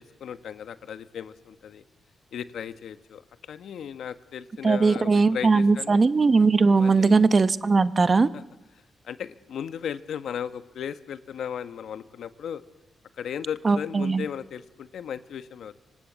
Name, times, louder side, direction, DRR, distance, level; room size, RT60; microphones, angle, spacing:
voice 1, 0.0-1.8 2.3-6.0 6.8-7.2 8.3-8.4 9.0-12.6 13.1-15.8, left 8 dB, 80° left, 12 dB, 1.3 m, -36 dB
voice 2, 4.6-8.3 13.6-14.2, right 4 dB, 35° right, 14 dB, 0.9 m, -20 dB
26.0 x 25.0 x 8.1 m, 1.1 s
wide cardioid pair, 125°, 0 cm